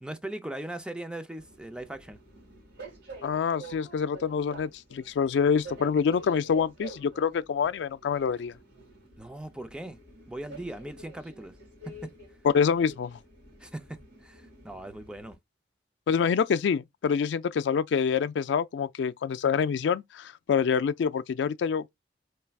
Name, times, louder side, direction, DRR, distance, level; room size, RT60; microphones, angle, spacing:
voice 1, 0.0-2.2 9.2-10.0 10.3-11.5 12.0-12.1 13.6-15.4, right 1 dB, 5° right, 0.4 m, -39 dB
Train, 1.4-15.3, right 3 dB, 65° right, 2.1 m, -48 dB
voice 2, 3.2-8.5 12.4-13.2 16.1-21.9, left 6 dB, 75° left, 0.3 m, -26 dB
4.4 x 3.2 x 2.3 m
head